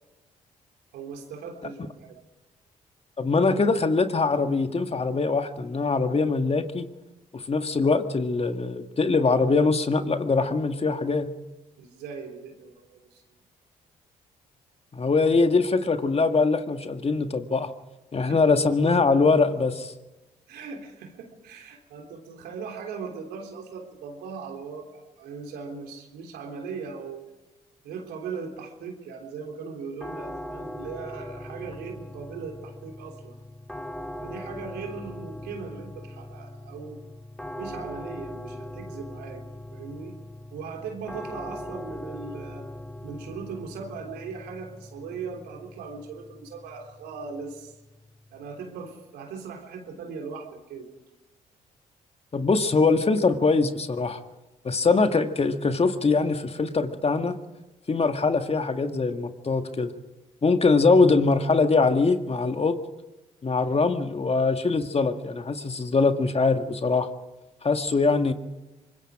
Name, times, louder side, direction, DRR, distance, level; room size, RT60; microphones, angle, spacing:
voice 1, 0.9-2.2 11.8-13.2 18.3-18.4 20.5-27.2 27.8-33.4 34.2-37.0 37.6-39.4 39.7-40.2 40.5-42.7 43.0-47.7 48.3-50.9, right 5 dB, 80° right, 3 dB, 3.5 m, -39 dB
voice 2, 3.2-6.9 7.3-11.3 14.9-17.7 18.1-19.9 52.3-54.2 54.6-57.3 57.9-59.9 60.4-62.8 63.4-67.1 67.6-68.3, left 4 dB, 35° left, 7 dB, 1.9 m, -22 dB
sound 1, 30.0-48.9, left 1 dB, 5° left, 2.8 m, -41 dB
24.5 x 21.5 x 4.9 m, 1.1 s
hypercardioid pair, 50°, 17 cm